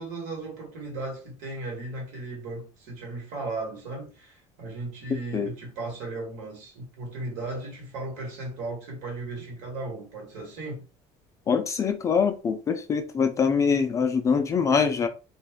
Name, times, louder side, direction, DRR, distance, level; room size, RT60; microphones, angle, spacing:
voice 1, 0.0-10.8, right 2 dB, 80° right, 1.5 m, -36 dB
voice 2, 11.5-15.1, left 6 dB, 25° left, 0.4 m, -24 dB
2.5 x 2.3 x 3.5 m
cardioid pair, 155°, 13 cm